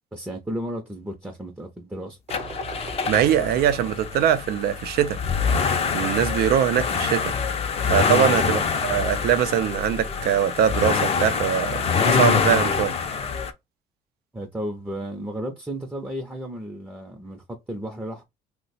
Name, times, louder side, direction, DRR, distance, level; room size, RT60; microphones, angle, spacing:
voice 1, 0.1-2.2 8.4-8.7 14.3-18.2, right 1 dB, 10° right, 0.6 m, -33 dB
sound 1, 2.3-13.5, left 6 dB, 35° left, 0.6 m, -25 dB
sound 2, 2.3-4.2 5.5-6.7 8.9-9.9, right 4 dB, 40° right, 0.9 m, -41 dB
voice 2, 3.1-5.2 5.9-7.3 7.9-12.9, right 9 dB, 70° right, 0.5 m, -22 dB
2.8 x 2.2 x 4.1 m
cardioid pair, 110°, 17 cm